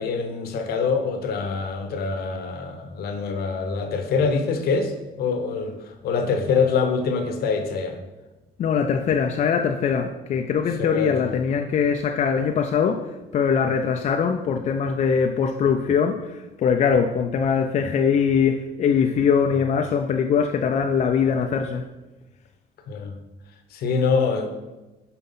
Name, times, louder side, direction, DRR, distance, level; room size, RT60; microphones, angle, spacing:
voice 1, 0.0-8.0 10.8-11.3 22.9-23.2 23.7-24.5, left 5 dB, 65° left, 7 dB, 0.9 m, -25 dB
voice 2, 8.6-13.1 13.3-21.8, left 6 dB, 45° left, 4 dB, 0.4 m, -22 dB
5.5 x 4.3 x 5.5 m, 1.1 s
cardioid pair, 110°, 17 cm